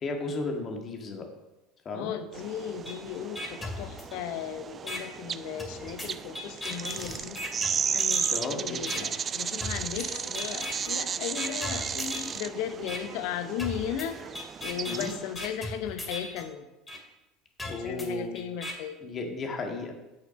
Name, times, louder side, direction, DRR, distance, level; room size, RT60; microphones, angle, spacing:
voice 1, 0.0-1.3 1.9-2.1 8.3-9.1 14.9-15.1 17.7-18.4 19.0-19.9, left 3 dB, 40° left, 3 dB, 1.8 m, -34 dB
voice 2, 1.9-7.4 7.9-14.3 14.6-16.7 17.6-19.0, left 9 dB, 65° left, 9 dB, 0.9 m, -36 dB
sound 1, 2.3-15.3, right 7 dB, 35° right, 0.3 m, -34 dB
sound 2, 2.9-3.0 3.4-4.4 4.9-5.0 5.6-8.4 8.9-9.0 9.6-10.1 10.4-10.9 11.4-12.4 12.9-13.0 13.6-16.4 16.9-17.0 17.6-18.7, left 2 dB, 15° left, 2.3 m, -37 dB
sound 3, 9.9-12.6 13.3-13.4 14.5-14.6, left 5 dB, 85° left, 1.5 m, -49 dB
8.3 x 6.6 x 5.3 m, 1.0 s
hypercardioid pair, 70°, 0 cm